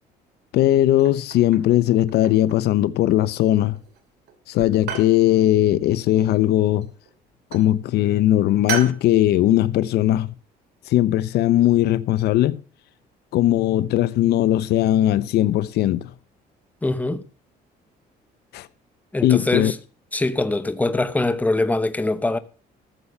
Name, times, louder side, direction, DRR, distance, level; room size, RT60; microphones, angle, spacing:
voice 1, 0.5-3.8 4.5-6.9 7.5-10.3 10.9-12.6 13.3-16.1 18.5-18.7 19.2-19.7, left 13 dB, 75° left, 0.7 m, -19 dB
sound 1, 1.0-1.7 2.1-2.7 3.5-4.0 4.3-5.2 6.6-7.1 7.5-7.7 8.7-9.0, right 8 dB, 75° right, 2.7 m, -33 dB
voice 2, 16.8-17.2 19.1-19.8 20.1-22.4, left 2 dB, 10° left, 1.0 m, -23 dB
14.0 x 7.1 x 6.4 m
cardioid pair, 110°, 17 cm